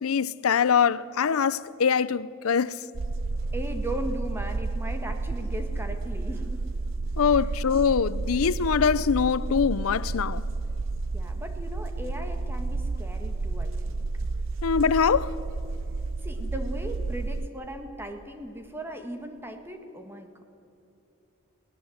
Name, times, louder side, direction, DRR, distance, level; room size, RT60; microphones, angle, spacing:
voice 1, 0.0-2.8 7.2-10.4 14.6-15.3, left 6 dB, 90° left, 0.5 m, -23 dB
sound 1, 2.9-17.5, right 3 dB, 70° right, 0.6 m, -31 dB
voice 2, 3.5-6.7 7.3-7.5 11.1-14.0 16.2-20.4, right 1 dB, 10° right, 1.6 m, -38 dB
23.0 x 17.5 x 7.9 m
head